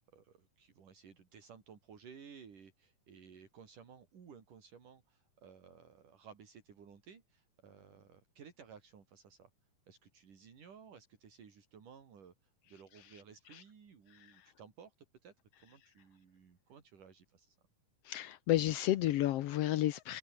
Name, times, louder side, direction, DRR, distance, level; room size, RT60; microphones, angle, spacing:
voice 1, 0.0-9.5 9.9-14.9 15.2-17.6, right 6 dB, 70° right, 4.9 m, -57 dB
voice 2, 18.0-20.2, left 14 dB, 85° left, 1.3 m, -31 dB
omnidirectional pair, 3.9 m